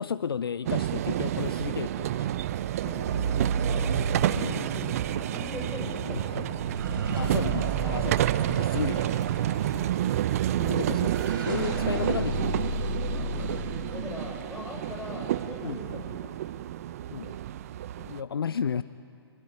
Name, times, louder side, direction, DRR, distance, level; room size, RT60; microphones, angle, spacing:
voice 1, 0.0-2.3 4.3-4.6 6.0-6.4 7.2-9.1 10.6-12.7 13.1-13.5 15.6-15.8 17.1-17.4 18.0-18.8, left 7 dB, 55° left, 15 dB, 0.6 m, -33 dB
sound 1, 0.7-18.2, right 12 dB, 35° right, 0.6 m, -29 dB
voice 2, 2.8-4.0 4.3-6.8 8.9-9.9 13.1-16.4, left 3 dB, 10° left, 0 dB, 4.8 m, -41 dB
sound 2, 3.1-14.4, right 2 dB, 50° right, 5.3 m, -34 dB
24.5 x 24.5 x 9.3 m, 2.5 s
figure-of-eight pair, 125°, 14 cm